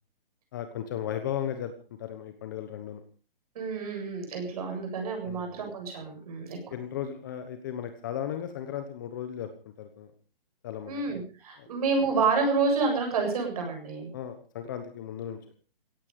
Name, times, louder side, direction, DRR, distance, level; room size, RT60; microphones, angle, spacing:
voice 1, 0.5-3.0 5.2-5.6 6.7-10.1 10.6-11.0 11.6-11.7 14.1-15.4, left 10 dB, 20° left, 8 dB, 1.1 m, -36 dB
voice 2, 3.5-6.7 10.9-14.1, right 4 dB, 40° right, 3 dB, 7.8 m, -29 dB
17.0 x 15.0 x 5.2 m, 0.38 s
hypercardioid pair, 170°, 30 cm